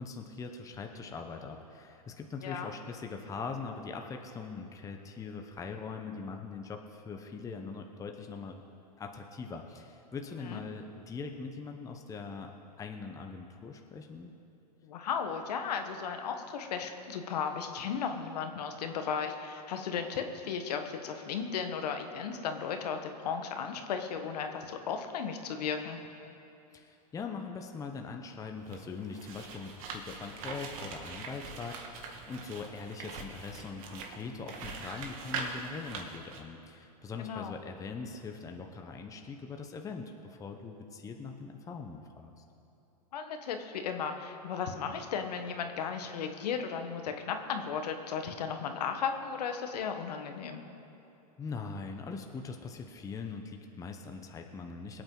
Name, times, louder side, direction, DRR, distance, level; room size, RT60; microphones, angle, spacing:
voice 1, 0.0-8.6 9.0-12.5 12.8-14.3 26.7-42.4 51.4-55.0, left 4 dB, 15° left, 4 dB, 0.9 m, -42 dB
voice 2, 14.8-26.0 37.2-37.5 43.1-50.6, left 6 dB, 70° left, 6 dB, 1.4 m, -35 dB
sound 1, 28.6-36.4, right 4 dB, 55° right, 1.9 m, -42 dB
22.5 x 8.8 x 3.9 m, 2.8 s
hypercardioid pair, 125°, 21 cm